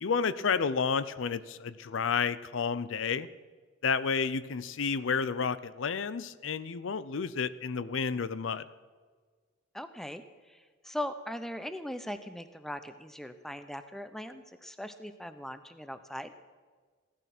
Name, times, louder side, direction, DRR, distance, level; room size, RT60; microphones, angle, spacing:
voice 1, 0.0-3.3 3.8-8.6, left 5 dB, 75° left, 16 dB, 0.5 m, -31 dB
voice 2, 9.7-16.3, left 1 dB, ahead, 10 dB, 0.7 m, -40 dB
16.5 x 12.5 x 6.0 m, 1.5 s
head